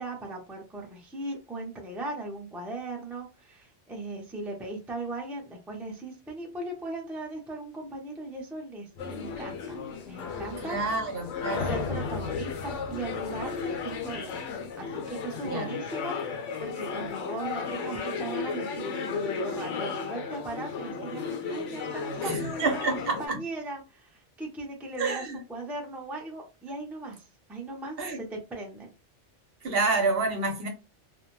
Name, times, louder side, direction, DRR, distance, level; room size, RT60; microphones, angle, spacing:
voice 1, 0.0-9.8 10.1-10.8 11.6-14.3 14.8-25.2 25.5-28.9, right 2 dB, ahead, 0.4 m, -38 dB
sound 1, 9.0-23.3, left 5 dB, 85° left, 1.0 m, -35 dB
sound 2, 9.0-14.4, left 4 dB, 65° left, 0.8 m, -38 dB
voice 2, 10.6-11.7 15.4-15.7 22.2-23.4 25.0-25.4 28.0-28.2 29.6-30.7, right 3 dB, 60° right, 0.8 m, -28 dB
2.5 x 2.1 x 3.0 m
omnidirectional pair, 1.2 m